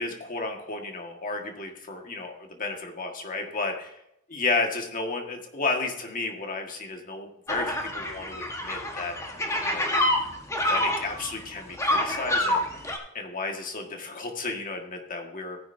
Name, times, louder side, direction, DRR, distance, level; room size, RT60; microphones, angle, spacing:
voice 1, 0.0-3.9 4.3-9.1 9.6-9.9 10.7-12.7 13.1-15.6, left 3 dB, 40° left, 3 dB, 1.7 m, -32 dB
sound 1, 7.5-13.0, left 1 dB, 15° left, 1.3 m, -27 dB
15.5 x 10.0 x 2.7 m, 0.80 s
head